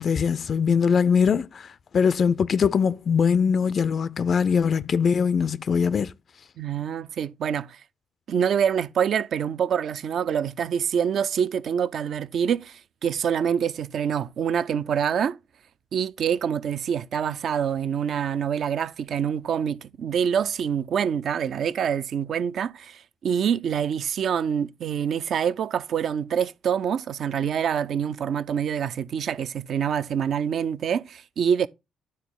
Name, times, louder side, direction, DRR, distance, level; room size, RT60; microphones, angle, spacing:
voice 1, 0.0-1.7 1.9-6.1, left 6 dB, 50° left, 0.4 m, -22 dB
voice 2, 6.6-7.8 8.3-15.4 15.9-31.7, right 8 dB, 55° right, 0.4 m, -26 dB
11.0 x 4.1 x 3.7 m
hypercardioid pair, 45°, 0 cm